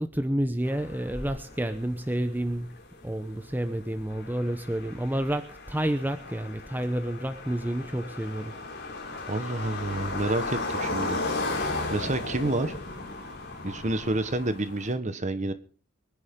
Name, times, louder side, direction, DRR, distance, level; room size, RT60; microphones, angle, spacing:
voice 1, 0.0-2.7 3.0-8.6, right 1 dB, 10° right, 9 dB, 0.8 m, -29 dB
sound 1, 0.6-14.9, left 2 dB, 55° left, 3.4 m, -36 dB
voice 2, 9.3-11.2 11.9-12.7 13.6-15.5, right 2 dB, 40° right, 11 dB, 1.2 m, -29 dB
24.5 x 10.5 x 3.7 m, 0.39 s
head